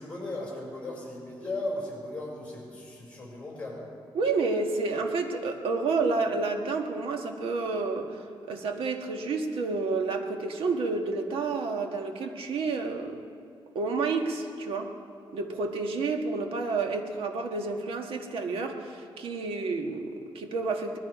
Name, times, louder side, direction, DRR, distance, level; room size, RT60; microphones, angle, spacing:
voice 1, 0.0-3.9, left 2 dB, 15° left, -3 dB, 5.2 m, -36 dB
voice 2, 4.1-8.2 8.5-13.2 13.7-14.9 15.3-21.0, right 3 dB, 85° right, 4 dB, 1.5 m, -30 dB
20.5 x 13.5 x 5.0 m, 2.3 s
wide cardioid pair, 155°, 9 cm